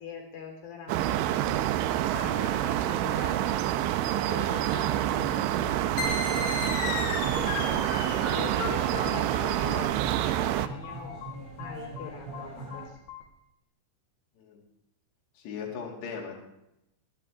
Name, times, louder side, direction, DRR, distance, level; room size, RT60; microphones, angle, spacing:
voice 1, 0.0-1.6 2.1-6.7 7.3-11.3 11.6-13.0, left 5 dB, 55° left, 2 dB, 4.9 m, -42 dB
sound 1, 0.9-10.7, right 13 dB, 90° right, 3.0 m, -27 dB
sound 2, 4.7-12.9, right 2 dB, 45° right, 5.3 m, -42 dB
sound 3, 6.0-13.2, left 4 dB, 85° left, 4.3 m, -36 dB
voice 2, 15.4-16.3, left 6 dB, 70° left, -1 dB, 4.5 m, -38 dB
22.0 x 13.0 x 3.5 m, 0.83 s
omnidirectional pair, 5.2 m